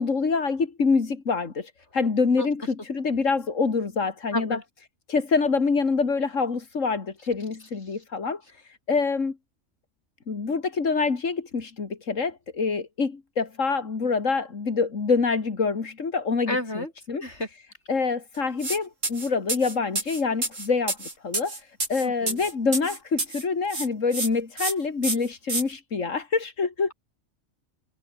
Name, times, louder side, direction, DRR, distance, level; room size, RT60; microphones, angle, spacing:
voice 1, 0.0-4.6 5.1-9.4 10.3-17.2 17.9-26.9, left 4 dB, 90° left, 2.7 m, -26 dB
voice 2, 16.5-16.9 17.2-17.5 22.0-22.4, left 1 dB, 60° left, 7.7 m, -30 dB
sound 1, 18.6-18.8 19.0-23.4 23.7-24.3 24.6-24.7 25.0-25.6, right 2 dB, 80° right, 5.0 m, -29 dB
omnidirectional pair, 1.3 m